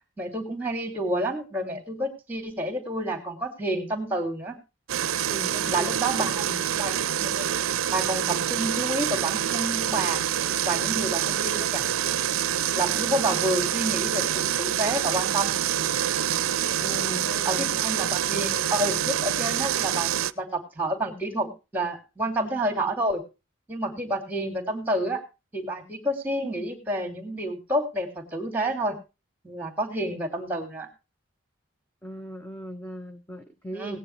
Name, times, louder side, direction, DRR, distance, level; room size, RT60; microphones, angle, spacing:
voice 1, 0.2-4.6 5.7-6.4 6.7-7.5 7.9-10.2 10.6-11.8 12.7-15.5 17.4-23.2 23.7-25.2 25.5-29.0 29.4-30.9 33.7-34.0, right 1 dB, 10° right, 4 dB, 2.6 m, -29 dB
sound 1, 4.9-20.3, right 10 dB, 85° right, 0.5 m, -26 dB
voice 2, 5.3-5.9 6.4-6.6 16.8-17.7 32.0-34.0, right 1 dB, 10° left, 5 dB, 1.0 m, -38 dB
18.0 x 9.8 x 3.2 m, 0.28 s
head